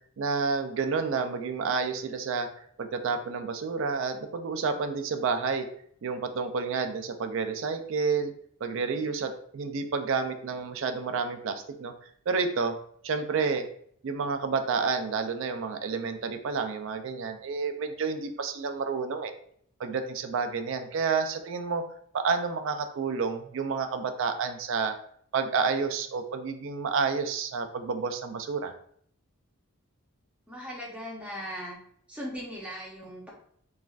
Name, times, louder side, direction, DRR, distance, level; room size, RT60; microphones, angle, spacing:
voice 1, 0.2-5.7 6.0-8.3 8.6-11.9 12.3-12.8 13.0-13.7 14.0-19.3 19.8-21.8 22.1-25.0 25.3-28.7, right 5 dB, 60° right, 7 dB, 0.3 m, -30 dB
voice 2, 30.5-31.8 32.1-33.3, equal, 5° right, -4 dB, 0.6 m, -38 dB
3.2 x 2.4 x 2.3 m, 0.65 s
head